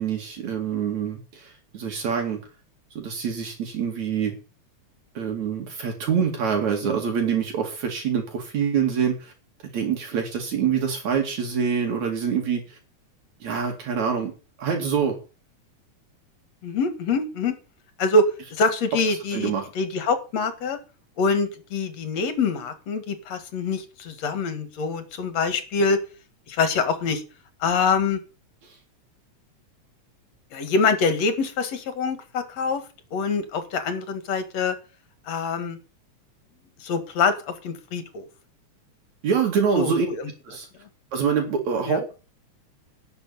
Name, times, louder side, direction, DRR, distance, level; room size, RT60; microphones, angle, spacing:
voice 1, 0.0-2.4 3.0-4.3 5.2-9.3 9.6-12.8 13.4-14.3 14.6-15.2 19.3-19.6 28.6-28.7 39.2-40.1 40.5-40.7 41.1-42.1, right 7 dB, 75° right, 2 dB, 3.7 m, -25 dB
voice 2, 16.6-17.6 18.0-20.8 21.2-26.0 26.5-27.2 27.6-28.2 30.5-32.8 33.1-34.8 35.3-35.8 36.8-38.3 39.8-40.3 41.8-42.0, left 4 dB, 65° left, 10 dB, 2.9 m, -25 dB
11.0 x 6.6 x 9.3 m, 0.34 s
omnidirectional pair, 3.3 m